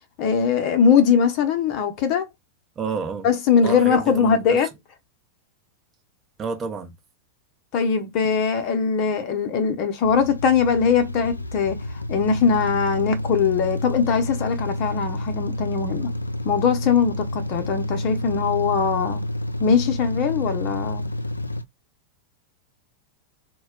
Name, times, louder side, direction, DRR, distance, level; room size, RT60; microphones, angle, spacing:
voice 1, 0.2-2.3 3.2-4.7 7.7-11.8 12.1-16.1 16.4-19.2 19.6-21.1, left 6 dB, 40° left, 0.7 m, -21 dB
voice 2, 2.8-3.3 3.6-4.6 6.4-7.0, right 5 dB, 25° right, 0.7 m, -30 dB
sound 1, 10.0-21.6, left 1 dB, 85° left, 0.3 m, -29 dB
2.2 x 2.1 x 3.6 m
figure-of-eight pair, 90°, 0 cm